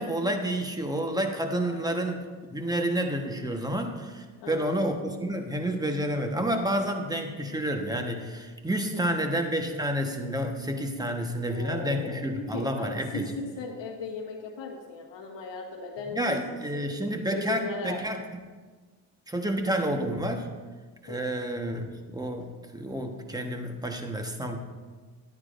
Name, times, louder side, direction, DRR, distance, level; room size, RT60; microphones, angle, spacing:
voice 1, 0.0-13.3 16.1-18.2 19.3-20.5 21.0-24.6, right 1 dB, 10° right, 4 dB, 1.2 m, -30 dB
voice 2, 1.6-2.2 4.4-4.9 8.9-9.3 11.5-16.3 16.7-16.8 17.3-18.0 21.1-21.3, left 4 dB, 65° left, -3 dB, 1.4 m, -38 dB
11.5 x 9.4 x 2.6 m, 1.4 s
supercardioid pair, 65°, 48 cm